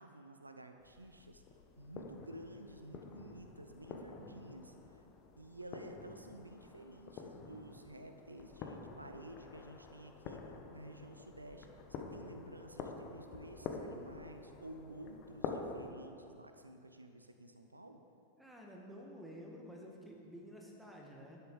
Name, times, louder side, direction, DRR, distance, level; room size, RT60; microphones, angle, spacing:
voice 1, 0.0-1.4 1.8-5.1 5.4-18.0, right 1 dB, 85° right, 6 dB, 0.7 m, -52 dB
sound 1, 0.8-15.9, left 5 dB, 35° left, 1.2 m, -48 dB
voice 2, 18.4-21.4, equal, 5° right, -1 dB, 1.9 m, -51 dB
11.5 x 9.9 x 5.0 m, 2.7 s
figure-of-eight pair, 90°, 0 cm